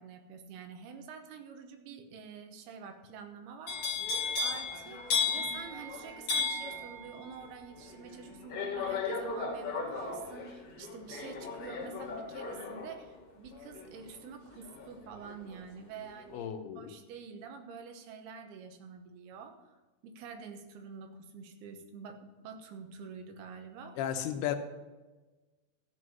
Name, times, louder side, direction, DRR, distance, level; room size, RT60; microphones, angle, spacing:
voice 1, 0.0-3.8 4.4-19.8 20.0-24.0, right 6 dB, 80° right, 5 dB, 3.0 m, -47 dB
sound 1, 3.7-15.6 16.0-16.4, left 4 dB, 50° left, 2.4 m, -36 dB
voice 2, 16.3-17.0 24.0-24.6, left 10 dB, 90° left, 7 dB, 2.8 m, -34 dB
14.5 x 6.3 x 5.5 m, 1.2 s
omnidirectional pair, 4.6 m